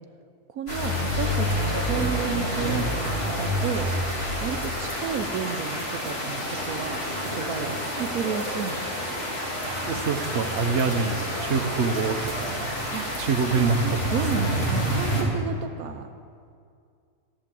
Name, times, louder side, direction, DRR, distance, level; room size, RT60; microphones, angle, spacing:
voice 1, 0.5-3.9 4.4-9.2 12.7-16.2, right 7 dB, 75° right, 7 dB, 1.1 m, -33 dB
sound 1, 0.7-15.2, equal, 40° left, 3.1 m, -28 dB
sound 2, 1.7-15.1, equal, 20° left, 2.5 m, -44 dB
voice 2, 9.9-12.7 13.2-14.5, right 5 dB, 50° right, 6 dB, 1.1 m, -26 dB
15.0 x 11.5 x 7.6 m, 2.3 s
omnidirectional pair, 1.6 m